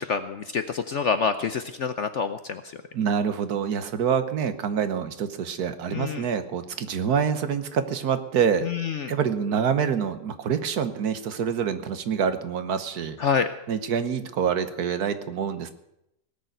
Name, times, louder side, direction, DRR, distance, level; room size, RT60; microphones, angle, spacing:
voice 1, 0.0-2.6 5.9-6.3 8.6-9.1 13.2-13.5, left 6 dB, 60° left, 10 dB, 0.8 m, -27 dB
voice 2, 2.9-8.7 9.1-13.2 13.7-15.7, right 7 dB, 65° right, 10 dB, 1.5 m, -26 dB
18.5 x 6.8 x 9.1 m, 0.82 s
omnidirectional pair, 1.8 m